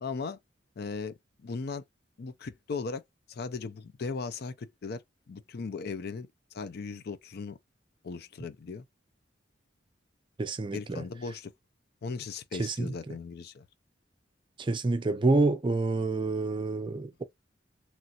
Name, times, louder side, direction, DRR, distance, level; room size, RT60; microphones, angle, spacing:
voice 1, 0.0-0.4 0.8-1.8 2.2-3.0 3.3-5.0 5.3-6.3 6.5-7.6 8.0-8.8 10.7-11.5 12.0-13.6, left 4 dB, 60° left, 0.4 m, -37 dB
voice 2, 10.4-11.0 12.6-13.2 14.6-17.2, right 2 dB, 25° right, 0.4 m, -28 dB
3.1 x 2.7 x 2.4 m
head